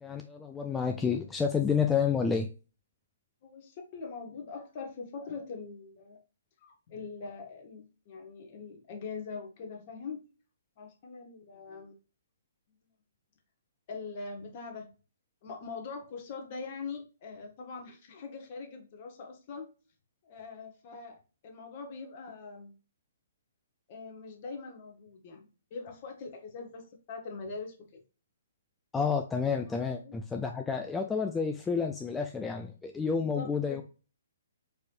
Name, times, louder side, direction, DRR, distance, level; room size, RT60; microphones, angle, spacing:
voice 1, 0.0-2.5 28.9-33.8, left 6 dB, 10° left, 3 dB, 0.3 m, -30 dB
voice 2, 3.4-6.2 6.6-10.2 10.8-11.9 13.9-14.9 15.4-19.7 20.2-22.7 23.9-28.0 29.7-30.1 33.0-33.8, left 4 dB, 40° left, 4 dB, 1.2 m, -43 dB
4.7 x 3.1 x 2.5 m, 0.34 s
figure-of-eight pair, 125°, 0 cm